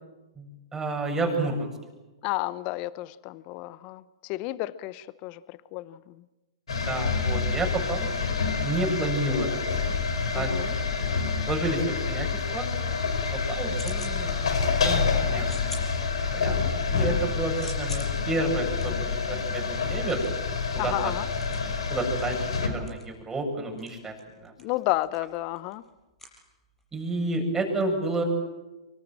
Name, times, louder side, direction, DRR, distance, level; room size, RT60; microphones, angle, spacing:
voice 1, 0.4-1.7 6.7-8.1 8.5-9.6 10.3-10.5 11.1-12.7 13.3-14.4 14.8-15.5 16.3-20.2 20.7-21.1 21.9-24.1 24.4-24.5 26.9-28.2, right 2 dB, 10° right, 1 dB, 7.9 m, -30 dB
voice 2, 2.2-6.1 10.3-10.7 16.5-16.7 20.8-21.3 24.6-25.8, left 18 dB, 40° left, 17 dB, 0.9 m, -32 dB
sound 1, 6.7-22.7, left 5 dB, 75° left, 5.0 m, -28 dB
sound 2, 13.7-14.2 14.5-15.0 15.4-16.6 17.0-27.0, left 1 dB, 10° left, 6.5 m, -47 dB
25.5 x 24.5 x 7.6 m, 1.1 s
hypercardioid pair, 120°, 3 cm